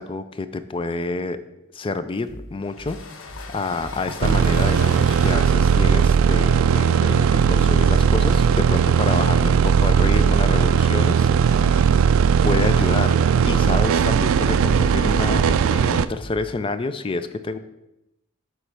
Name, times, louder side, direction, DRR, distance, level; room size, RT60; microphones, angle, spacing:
voice 1, 0.0-1.4 1.7-11.8 12.4-17.6, left 3 dB, 25° left, 11 dB, 0.4 m, -28 dB
sound 1, 2.3-16.6, equal, ahead, 2.4 m, -40 dB
sound 2, 2.6-8.1, left 4 dB, 65° left, 0.7 m, -39 dB
sound 3, 4.2-16.1, right 7 dB, 70° right, 0.3 m, -18 dB
8.0 x 3.2 x 6.0 m, 0.91 s
head